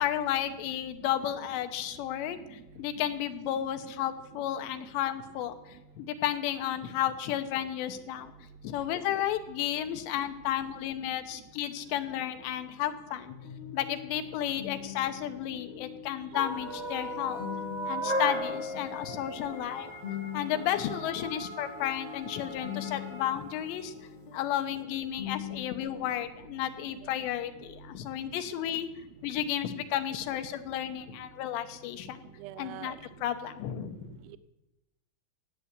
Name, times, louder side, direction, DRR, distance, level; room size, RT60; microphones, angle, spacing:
voice 1, 0.0-8.3 8.6-13.3 13.7-17.4 17.9-19.9 20.3-23.9 24.3-28.9 29.2-32.2 32.6-34.2, left 11 dB, 85° left, 8 dB, 3.1 m, -33 dB
sound 1, 13.3-26.2, left 10 dB, 65° left, 1.8 m, -43 dB
sound 2, 16.3-23.9, right 1 dB, 35° right, 1.0 m, -37 dB
voice 2, 32.4-33.0, right 13 dB, 80° right, 12 dB, 2.2 m, -42 dB
17.0 x 8.4 x 8.2 m, 0.95 s
omnidirectional pair, 5.0 m